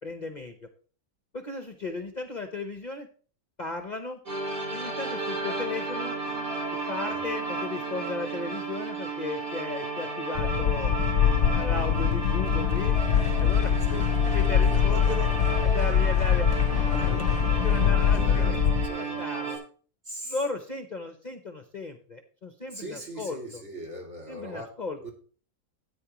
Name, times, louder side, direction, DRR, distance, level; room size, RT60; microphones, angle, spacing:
voice 1, 0.0-0.7 1.3-3.1 3.6-4.2 4.7-6.2 6.9-10.9 11.4-13.0 13.4-13.7 14.2-15.3 15.6-16.5 17.1-17.3 17.6-18.6 19.0-19.6 20.2-23.6 24.3-25.0, left 3 dB, 40° left, 0.8 m, -35 dB
sound 1, 4.3-19.6, right 4 dB, 75° right, 4.1 m, -33 dB
sound 2, 10.4-18.9, left 9 dB, 65° left, 1.0 m, -23 dB
sound 3, 12.9-18.5, left 1 dB, 5° left, 2.4 m, -42 dB
voice 2, 14.7-15.3 18.1-18.5 18.8-19.2 20.0-20.3 22.7-24.7 25.0-25.1, equal, 55° right, 3.0 m, -40 dB
13.5 x 9.0 x 3.0 m
omnidirectional pair, 1.5 m